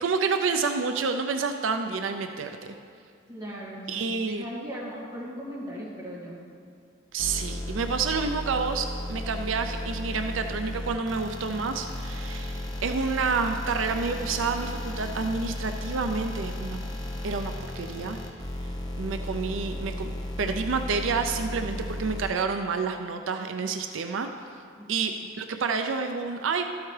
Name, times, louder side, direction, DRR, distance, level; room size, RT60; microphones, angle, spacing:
voice 1, 0.0-2.8 3.9-4.4 7.1-16.8 17.2-18.2 18.6-20.1 20.4-24.3 24.9-26.6, right 4 dB, 85° right, 6 dB, 0.5 m, -29 dB
voice 2, 3.3-6.4 24.8-25.0, equal, 20° right, -6 dB, 2.1 m, -38 dB
sound 1, 7.2-22.3, left 1 dB, 20° left, 0.9 m, -34 dB
13.5 x 8.0 x 3.3 m, 2.4 s
head